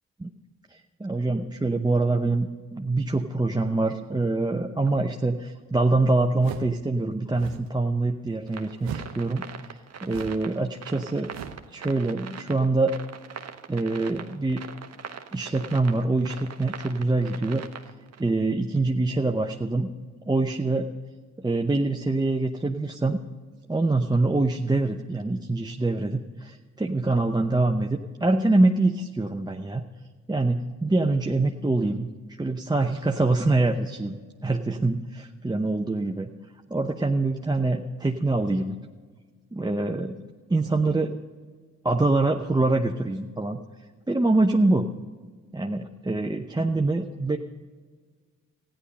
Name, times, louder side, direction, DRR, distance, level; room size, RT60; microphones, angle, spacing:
voice 1, 0.7-9.4 10.0-11.3 11.7-13.0 13.7-14.6 15.3-17.6 18.2-19.9 20.3-20.9 21.4-23.2 23.7-29.8 30.3-32.1 32.4-36.3 36.7-38.8 39.5-40.2 40.5-41.2 41.8-43.6 44.1-44.9 45.5-47.4, right 2 dB, 15° right, 3 dB, 0.8 m, -25 dB
sound 1, 6.4-6.8 7.3-7.7 8.8-9.2 10.0-10.5 11.3-11.7, right 8 dB, 85° right, 0.8 m, -38 dB
sound 2, 8.5-18.2, right 7 dB, 50° right, 1.0 m, -41 dB
14.0 x 10.0 x 5.4 m, 1.5 s
supercardioid pair, 45°, 32 cm